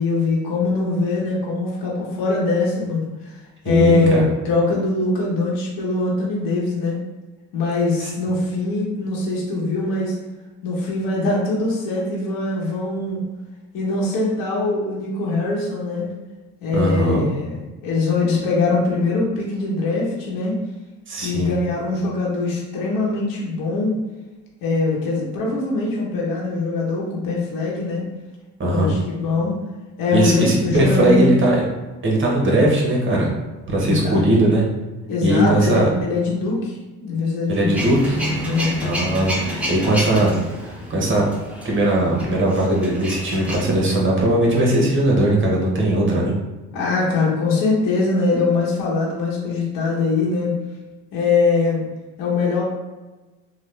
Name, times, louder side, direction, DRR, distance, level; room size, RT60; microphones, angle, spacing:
voice 1, 0.0-3.4 3.6-7.0 7.5-10.2 10.6-13.2 13.7-16.1 16.6-17.6 17.8-20.6 21.2-23.9 24.6-28.0 28.7-29.6 30.0-31.3 33.8-34.2 35.1-37.8 38.4-38.8 46.7-50.6 51.1-51.8 52.2-52.6, left 3 dB, 65° left, -4 dB, 1.0 m, -22 dB
voice 2, 3.7-4.2 8.0-8.1 16.7-17.3 21.1-21.5 28.6-28.9 30.1-31.7 32.0-33.3 33.7-34.6 35.2-35.9 37.5-38.2 38.8-40.3 40.6-41.3 41.6-46.3, right 1 dB, 35° right, -2 dB, 1.0 m, -19 dB
Male speech man speaking / Vehicle / Engine starting, 37.7-43.6, equal, 5° right, 0.7 m, -29 dB
3.1 x 2.2 x 3.2 m, 1.2 s
supercardioid pair, 80°, 36 cm